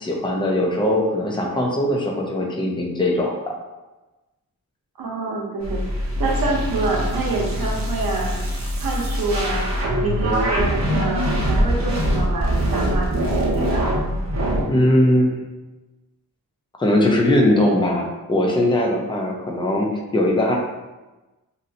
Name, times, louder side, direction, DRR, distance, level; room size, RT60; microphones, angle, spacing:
voice 1, 0.0-3.3 14.7-15.4 16.8-20.5, left 1 dB, 15° left, -1 dB, 0.4 m, -20 dB
voice 2, 5.0-8.4 8.8-9.6 10.0-13.9, right 2 dB, 85° right, -1 dB, 0.8 m, -27 dB
sound 1, 5.6-14.6, equal, 50° right, 0.7 m, -23 dB
3.0 x 2.7 x 2.7 m, 1.1 s
wide cardioid pair, 145°, 35 cm